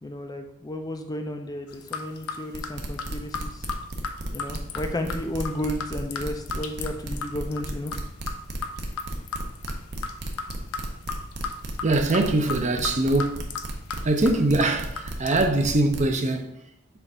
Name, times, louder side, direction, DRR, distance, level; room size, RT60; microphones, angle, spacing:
voice 1, 0.0-3.7 4.3-7.9, left 1 dB, 20° left, 0.4 m, -33 dB
sound 1, 1.7-15.5, left 5 dB, 85° left, 0.6 m, -37 dB
sound 2, 2.5-16.1, right 1 dB, 55° right, 0.9 m, -33 dB
voice 2, 11.8-13.4 14.0-16.5, right 2 dB, 35° right, 0.6 m, -22 dB
6.9 x 2.5 x 5.4 m
head